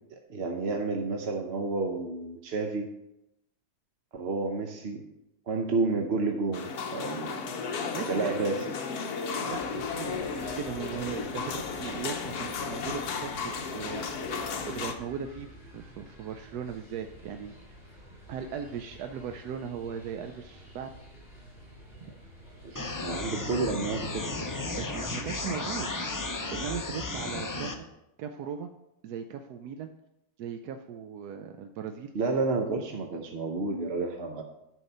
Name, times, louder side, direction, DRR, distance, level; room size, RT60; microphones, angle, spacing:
voice 1, 0.1-2.9 4.1-5.0 5.5-7.4 8.1-8.6 22.0-22.1 22.6-24.3 32.1-34.4, right 3 dB, 50° right, 3 dB, 0.9 m, -30 dB
sound 1, 6.5-14.9, left 5 dB, 75° left, 1.4 m, -34 dB
voice 2, 7.9-8.4 9.3-14.4 14.7-17.8 18.3-20.9 24.8-25.9 26.5-27.9 28.2-28.7 29.0-29.9 30.4-32.1, right 7 dB, 80° right, 6 dB, 1.1 m, -38 dB
sound 2, 9.5-23.3, equal, 35° left, 3.8 m, -50 dB
sound 3, 22.7-27.7, left 2 dB, 20° left, 0.5 m, -34 dB
11.0 x 4.8 x 5.4 m, 0.87 s
omnidirectional pair, 1.6 m